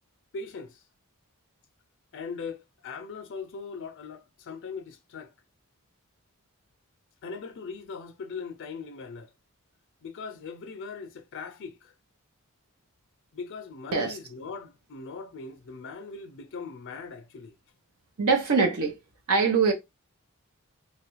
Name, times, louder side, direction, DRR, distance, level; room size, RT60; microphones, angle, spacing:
voice 1, 0.3-0.8 2.1-5.3 7.2-9.3 10.0-11.9 13.3-17.6, left 5 dB, 55° left, 0.4 m, -40 dB
voice 2, 18.2-18.9 19.3-19.7, right 5 dB, 70° right, 0.7 m, -23 dB
3.1 x 2.4 x 3.0 m
head